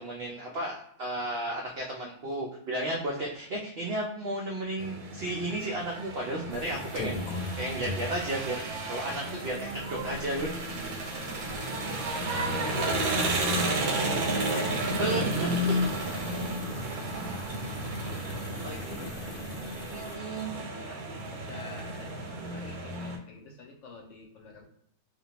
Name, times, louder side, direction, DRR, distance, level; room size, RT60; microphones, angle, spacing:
voice 1, 0.0-7.2 7.6-10.5 15.0-15.5 18.6-19.0 19.9-20.5, right 1 dB, 75° right, -1 dB, 0.5 m, -33 dB
sound 1, 4.8-23.2, right 1 dB, 90° right, 1.1 m, -32 dB
sound 2, 6.5-20.2, left 2 dB, 90° left, 1.1 m, -44 dB
voice 2, 11.5-15.0 15.6-15.8 16.5-16.8 17.7-24.6, left 4 dB, 65° left, 1 dB, 0.8 m, -46 dB
2.4 x 2.2 x 2.8 m, 0.74 s
omnidirectional pair, 1.6 m